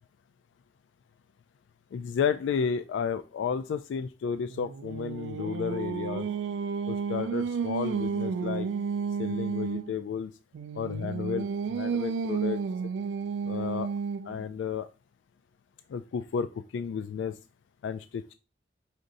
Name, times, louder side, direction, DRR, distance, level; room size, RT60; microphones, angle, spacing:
voice 1, 1.9-6.3 6.9-8.7 9.2-10.3 10.7-12.6 13.4-13.9 14.2-14.9 15.9-17.4 17.8-18.3, left 7 dB, 85° left, 12 dB, 0.3 m, -32 dB
Singing, 4.5-9.9 10.5-14.4, right 6 dB, 75° right, 0.3 m, -32 dB
5.0 x 4.0 x 2.6 m, 0.30 s
head